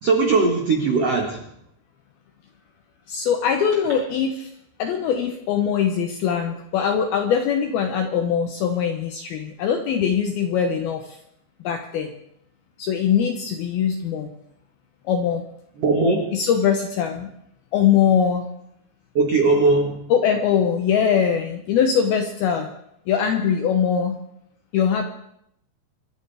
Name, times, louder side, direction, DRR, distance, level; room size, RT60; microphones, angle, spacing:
voice 1, 0.0-1.5 15.8-16.3 19.1-20.0, right 3 dB, 90° right, 2 dB, 1.3 m, -19 dB
voice 2, 3.1-4.5 4.8-11.0 11.6-12.1 12.8-14.3 15.1-15.4 16.3-17.3 17.7-18.4 20.1-22.7 23.1-24.2 24.7-25.1, left 7 dB, 75° left, 5 dB, 2.3 m, -22 dB
26.5 x 12.5 x 3.4 m, 0.75 s
omnidirectional pair, 5.3 m